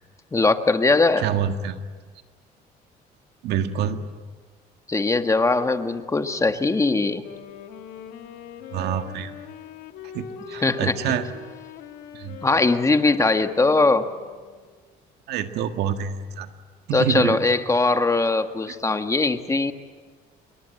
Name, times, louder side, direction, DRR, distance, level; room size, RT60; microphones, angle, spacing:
voice 1, 0.3-1.2 4.9-7.2 10.6-10.9 12.4-14.1 16.9-19.7, left 3 dB, 20° left, 8 dB, 1.5 m, -20 dB
voice 2, 1.2-1.8 3.4-4.0 8.7-9.3 10.1-11.3 12.1-12.4 15.3-16.5 16.9-17.4 18.7-18.8, right 9 dB, 80° right, 7 dB, 1.8 m, -26 dB
Wind instrument woodwind instrument, 7.1-14.8, left 7 dB, 85° left, 2.8 m, -41 dB
28.0 x 22.5 x 8.8 m, 1.5 s
cardioid pair, 110°, 17 cm